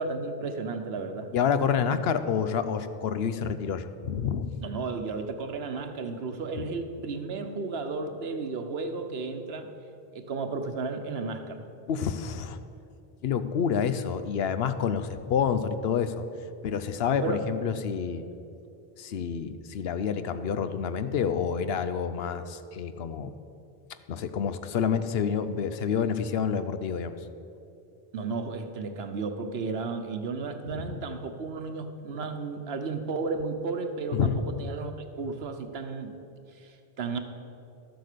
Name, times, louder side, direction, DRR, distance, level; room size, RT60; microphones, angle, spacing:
voice 1, 0.0-1.3 4.6-9.7 10.1-11.6 17.2-17.5 18.1-18.2 28.1-36.1 36.6-37.2, right 4 dB, 80° right, 7 dB, 1.1 m, -33 dB
voice 2, 1.3-4.6 6.6-6.7 11.9-12.6 13.2-16.3 16.6-18.2 19.0-23.3 24.1-27.1 30.7-31.0 34.1-34.4, left 7 dB, 75° left, 11 dB, 0.9 m, -28 dB
12.5 x 7.9 x 6.7 m, 2.6 s
omnidirectional pair, 1.0 m